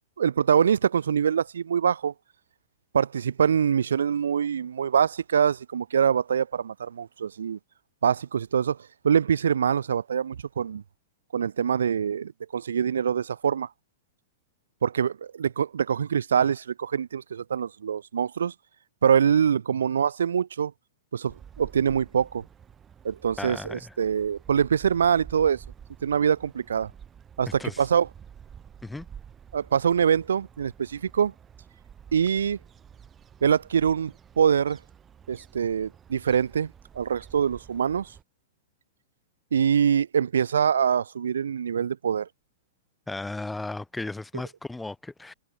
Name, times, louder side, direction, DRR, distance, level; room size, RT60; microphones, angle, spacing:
voice 1, 0.2-2.1 2.9-7.6 8.0-8.8 9.0-10.8 11.3-13.7 14.8-18.5 19.0-20.7 21.1-22.4 23.0-25.6 26.0-26.9 27.4-28.1 29.5-31.3 32.1-32.6 33.4-34.8 35.3-38.1 39.5-42.3, right 7 dB, 85° right, 1.2 m, -24 dB
sound 1, 21.3-38.2, right 8 dB, 20° right, 5.1 m, -50 dB
voice 2, 23.4-23.9 27.6-27.8 28.8-29.1 43.1-45.3, left 2 dB, 5° left, 2.4 m, -35 dB
hypercardioid pair, 120°, 0 cm